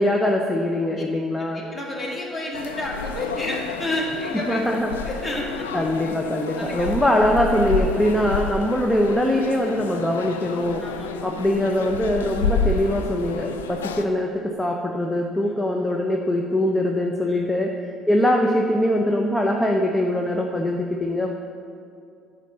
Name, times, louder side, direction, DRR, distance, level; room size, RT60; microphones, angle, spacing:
voice 1, 0.0-1.6 4.5-4.9 5.7-10.8 11.2-17.7 18.1-21.3, left 1 dB, 10° left, 1 dB, 0.7 m, -22 dB
voice 2, 1.4-4.6 5.1-5.9 6.5-6.9 10.8-11.3 15.4-15.7 17.3-17.5, left 1 dB, 25° left, -2 dB, 2.0 m, -31 dB
sound 1, 2.5-14.0, left 4 dB, 85° left, 0.4 m, -30 dB
9.3 x 3.9 x 6.9 m, 2.4 s
hypercardioid pair, 55°, 0 cm